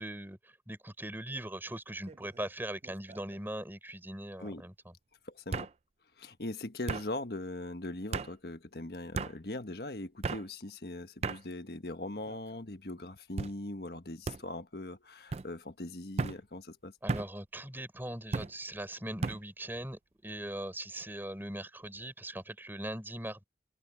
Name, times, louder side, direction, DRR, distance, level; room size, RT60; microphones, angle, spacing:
voice 1, 0.0-4.7 17.0-23.4, right 1 dB, 10° right, 4.9 m, -40 dB
sound 1, 2.1-2.5 2.8-3.4 4.5-4.6 5.5-5.7 6.9-7.1 8.1-8.3 9.1-9.3 10.2-10.5 11.2-11.4 12.2-12.6 13.4-13.6 14.3-14.4 15.3-15.5 16.2-16.4 17.1-17.3 18.3-18.5 19.2-19.4, right 4 dB, 35° right, 0.4 m, -35 dB
voice 2, 5.2-5.7 6.2-16.9, left 2 dB, 60° left, 1.5 m, -40 dB
head